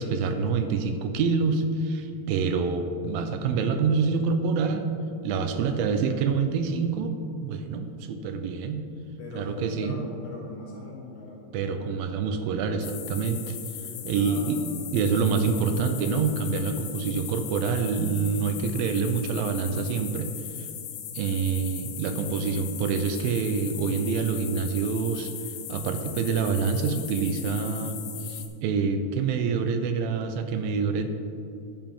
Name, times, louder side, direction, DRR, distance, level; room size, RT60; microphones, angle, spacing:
voice 1, 0.0-4.9 5.2-7.1 7.4-8.9 9.4-10.0 11.5-13.6 14.1-14.6 14.9-20.3 20.6-20.7 21.1-25.3 25.7-31.1, right 5 dB, 85° right, 7 dB, 2.3 m, -26 dB
voice 2, 9.2-11.8 13.8-14.6, left 1 dB, 60° left, -5 dB, 2.9 m, -41 dB
sound 1, 12.8-28.5, left 10 dB, 85° left, 2.6 m, -39 dB
10.0 x 7.0 x 3.7 m, 2.5 s
omnidirectional pair, 4.2 m